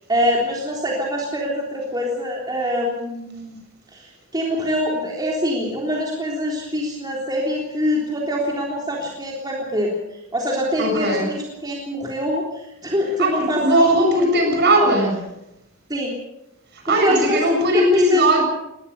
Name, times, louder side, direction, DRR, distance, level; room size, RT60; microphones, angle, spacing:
voice 1, 0.1-3.6 3.9-13.8 14.8-14.9 15.9-16.2 16.9-18.2, equal, 20° right, -2 dB, 3.5 m, -24 dB
voice 2, 10.8-11.3 13.2-15.2 16.7-18.4, right 1 dB, 50° right, 3 dB, 7.4 m, -18 dB
20.5 x 20.0 x 6.8 m, 0.88 s
head